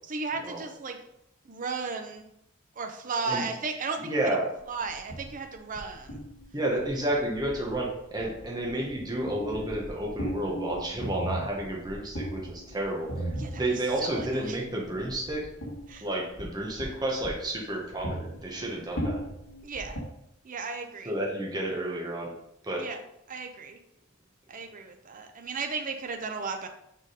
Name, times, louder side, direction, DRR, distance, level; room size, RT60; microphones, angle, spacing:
voice 1, 0.0-1.0 1.5-2.3 2.8-4.4 4.7-6.2 13.4-14.6 15.9-16.1 19.6-20.0 20.4-21.2 22.8-23.0 23.3-23.8 24.5-26.7, right 4 dB, 40° right, 5 dB, 0.6 m, -35 dB
voice 2, 4.0-4.5 6.5-13.3 13.6-15.4 16.0-19.2 21.1-22.3 22.6-22.8, right 1 dB, 20° right, -2 dB, 1.1 m, -31 dB
sound 1, 4.8-20.0, right 1 dB, 80° left, 1.8 m, -38 dB
6.7 x 3.7 x 4.9 m, 0.79 s
head